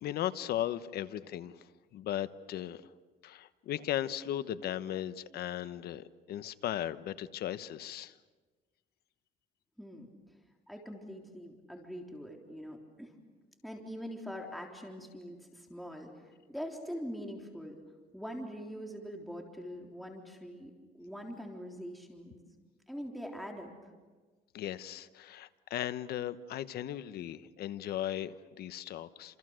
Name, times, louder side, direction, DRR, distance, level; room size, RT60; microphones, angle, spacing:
voice 1, 0.0-1.7 1.9-2.8 3.2-8.1 24.5-29.4, left 12 dB, 70° left, 13 dB, 1.1 m, -37 dB
voice 2, 9.8-10.1 10.7-13.1 13.6-17.7 18.1-20.7 21.0-22.3 22.9-23.9, equal, ahead, 1 dB, 3.7 m, -43 dB
29.0 x 28.0 x 6.5 m, 1.3 s
cardioid pair, 110°, 17 cm